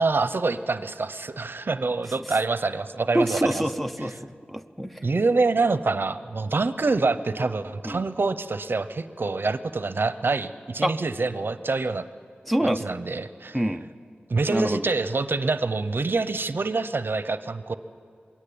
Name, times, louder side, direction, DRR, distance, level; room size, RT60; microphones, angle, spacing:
voice 1, 0.0-3.6 5.0-12.1 12.6-13.6 14.3-17.7, right 3 dB, 65° right, 12 dB, 0.7 m, -26 dB
voice 2, 3.1-5.0 7.8-8.0 10.8-11.0 12.5-13.0 13.5-13.9 14.5-14.9, right 1 dB, ahead, 6 dB, 0.7 m, -26 dB
21.5 x 17.0 x 8.6 m, 2.3 s
wide cardioid pair, 80°, 4 cm